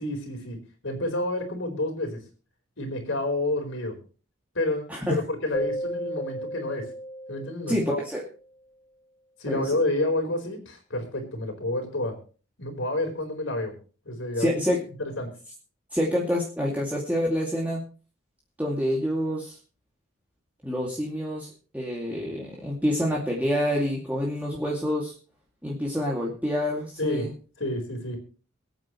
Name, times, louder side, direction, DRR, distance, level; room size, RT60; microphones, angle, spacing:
voice 1, 0.0-2.2 2.8-4.0 4.5-6.9 7.3-8.0 9.4-12.2 12.6-13.7 14.0-14.6 15.0-15.3 27.0-27.3 27.6-28.2, left 1 dB, 80° left, 4 dB, 4.5 m, -29 dB
voice 2, 4.9-5.2 7.7-8.2 9.5-9.7 14.4-14.8 15.9-17.8 18.6-19.6 20.6-25.1 25.6-27.3, equal, 10° right, -4 dB, 2.4 m, -27 dB
Keyboard (musical), 5.5-8.3, equal, 25° left, 3.6 m, -34 dB
23.5 x 9.1 x 3.2 m, 0.38 s
head